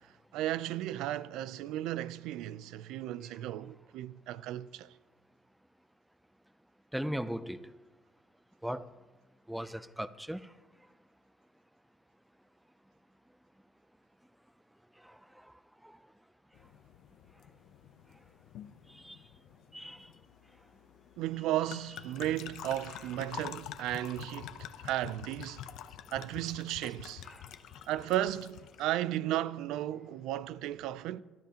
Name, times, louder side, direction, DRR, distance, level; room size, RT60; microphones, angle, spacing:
voice 1, 0.3-4.9 21.2-25.7 26.1-27.3 27.9-31.2, right 13 dB, 80° right, 0.4 m, -35 dB
voice 2, 6.9-7.7 8.6-8.9 9.5-10.5 19.0-19.2 19.7-20.0 27.3-27.4, equal, 5° right, 0.5 m, -37 dB
sound 1, 16.5-28.9, left 11 dB, 75° left, 0.6 m, -48 dB
23.5 x 12.5 x 2.9 m
cardioid pair, 125°, 0 cm